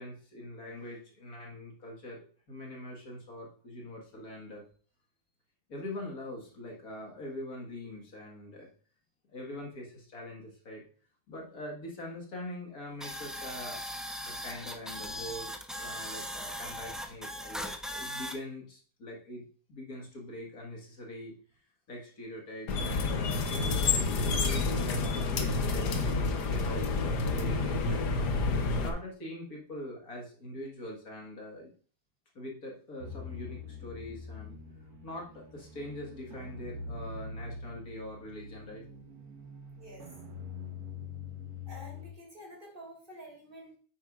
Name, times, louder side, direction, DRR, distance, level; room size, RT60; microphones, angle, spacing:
voice 1, 0.0-4.6 5.7-8.7 9.3-10.8 11.3-13.8 14.2-19.4 19.7-21.4 21.9-31.7 32.4-34.6 35.0-38.9, left 1 dB, 65° left, -1 dB, 2.2 m, -43 dB
sound 1, 13.0-18.3, equal, ahead, 0.4 m, -39 dB
sound 2, 22.7-28.9, left 3 dB, 85° left, 1.6 m, -29 dB
sound 3, 33.0-42.1, left 4 dB, 70° right, 1.6 m, -44 dB
voice 2, 41.7-43.8, equal, 30° right, -1 dB, 3.7 m, -49 dB
9.4 x 8.4 x 2.5 m, 0.42 s
omnidirectional pair, 1.7 m